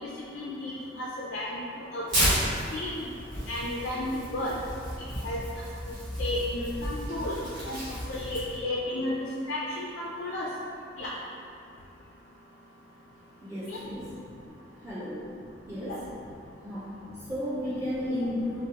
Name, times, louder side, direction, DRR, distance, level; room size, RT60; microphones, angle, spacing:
voice 1, 0.0-1.6 1.9-2.3 2.7-3.1 3.5-4.5 5.2-5.4 6.2-7.3 7.7-7.8 8.1-9.1 9.5-10.5 11.0-11.1 13.7-13.8 15.9-16.0, left 1 dB, 65° left, -4 dB, 0.4 m, -33 dB
Tearing, 2.1-8.6, equal, 90° right, 1.3 m, -32 dB
voice 2, 13.4-14.2 14.8-15.3 15.7-16.0 16.6-18.7, left 1 dB, 15° right, -10 dB, 0.4 m, -33 dB
3.9 x 2.0 x 2.8 m, 2.6 s
head